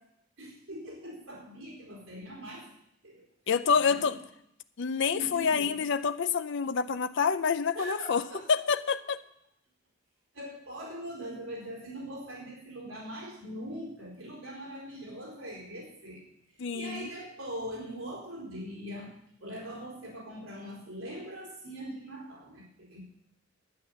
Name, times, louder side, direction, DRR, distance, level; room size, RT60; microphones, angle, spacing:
voice 1, 0.4-2.7 3.0-3.3 3.7-4.1 5.1-5.8 7.8-8.4 10.3-16.2 16.7-19.1 19.4-23.0, equal, 80° right, -3 dB, 4.2 m, -41 dB
voice 2, 3.5-4.1 4.8-8.2 8.5-9.2 16.6-17.1, left 6 dB, 60° left, 11 dB, 0.6 m, -27 dB
11.5 x 9.0 x 7.0 m, 0.75 s
head